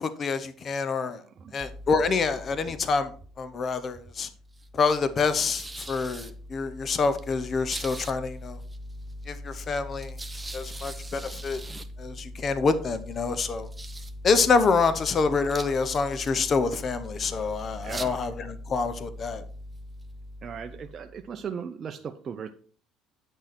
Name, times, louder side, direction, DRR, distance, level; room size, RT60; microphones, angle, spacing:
voice 1, 0.0-1.2 1.5-3.1 3.4-4.3 4.7-8.6 9.3-10.2 10.5-11.6 12.0-13.7 14.2-19.4, left 4 dB, 40° left, 12 dB, 0.9 m, -26 dB
sound 1, 1.6-21.5, equal, 15° right, 0.9 m, -41 dB
voice 2, 17.8-18.2 20.4-22.5, right 7 dB, 40° right, 5 dB, 0.7 m, -37 dB
10.0 x 6.5 x 4.4 m, 0.43 s
supercardioid pair, 100°, 0 cm